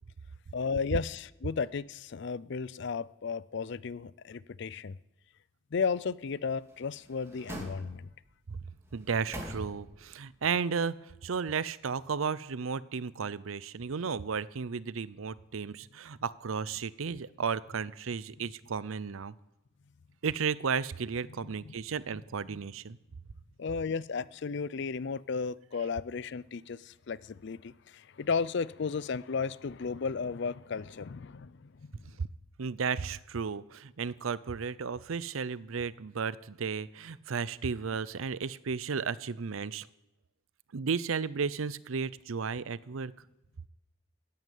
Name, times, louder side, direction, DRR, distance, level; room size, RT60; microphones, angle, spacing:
voice 1, 0.5-5.0 5.7-8.1 21.6-21.7 22.5-22.6 23.6-32.2, left 5 dB, 55° left, 20 dB, 0.5 m, -34 dB
sound 1, 6.6-8.3 8.8-10.1 10.5-10.6, right 1 dB, 15° right, 2.6 m, -44 dB
voice 2, 8.9-19.3 20.2-23.0 32.2-32.3 32.6-39.9 40.7-43.1, right 5 dB, 80° right, 19 dB, 0.6 m, -34 dB
14.5 x 9.4 x 9.3 m, 0.95 s
head